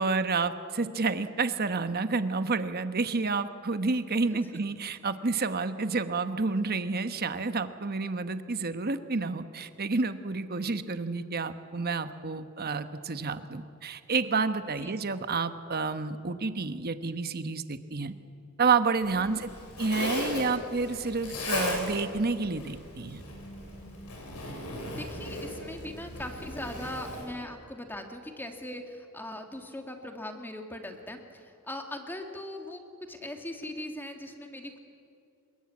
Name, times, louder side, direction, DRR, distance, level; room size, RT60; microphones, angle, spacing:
voice 1, 0.0-18.1 18.6-19.5 19.8-23.2, right 4 dB, 45° right, 11 dB, 1.1 m, -29 dB
Zipper (clothing), 19.0-27.2, left 1 dB, 90° left, 7.2 m, -37 dB
voice 2, 24.8-32.8 33.1-34.8, left 1 dB, 10° left, 4 dB, 2.0 m, -40 dB
25.0 x 22.0 x 8.6 m, 2.5 s
head